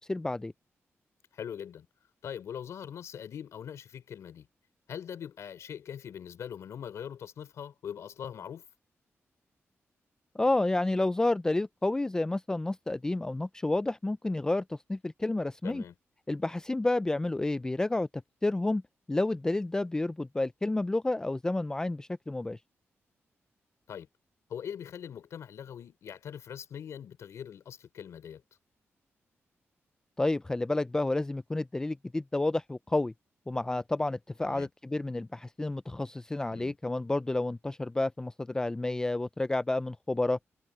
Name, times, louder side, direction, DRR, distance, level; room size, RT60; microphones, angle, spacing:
voice 1, 0.1-0.5 10.4-15.8 16.3-18.1 18.4-18.8 19.1-22.6 30.2-33.1 33.5-40.4, left 2 dB, 15° left, 0.3 m, -30 dB
voice 2, 1.3-1.9 2.2-4.5 4.9-8.6 15.6-15.9 23.9-24.1 24.5-28.4 34.4-34.7 36.5-36.7, left 8 dB, 85° left, 4.6 m, -42 dB
wide cardioid pair, 135°, 5 cm